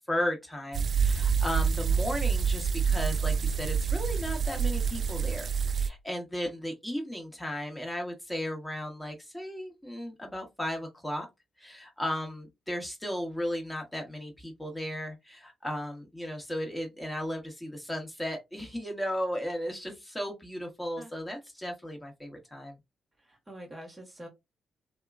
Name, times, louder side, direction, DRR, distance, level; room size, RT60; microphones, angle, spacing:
voice 1, 0.1-5.5 5.7-11.3 11.6-22.8, equal, 15° left, 1.2 m, -35 dB
sound 1, 0.7-5.9, right 6 dB, 55° right, 0.3 m, -27 dB
voice 2, 23.2-24.3, right 1 dB, 20° right, 1.1 m, -45 dB
2.8 x 2.2 x 2.4 m
hypercardioid pair, 40°, 0 cm